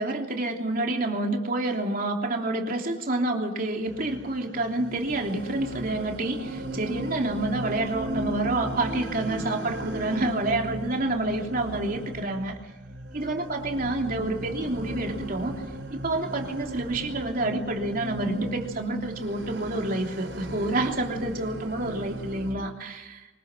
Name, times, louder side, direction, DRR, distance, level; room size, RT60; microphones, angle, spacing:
voice 1, 0.0-12.6 13.1-15.5 15.9-23.3, right 2 dB, 50° right, 2 dB, 3.2 m, -28 dB
sound 1, 3.9-22.5, right 1 dB, 75° right, 4.3 m, -37 dB
24.5 x 22.0 x 6.2 m, 1.1 s
head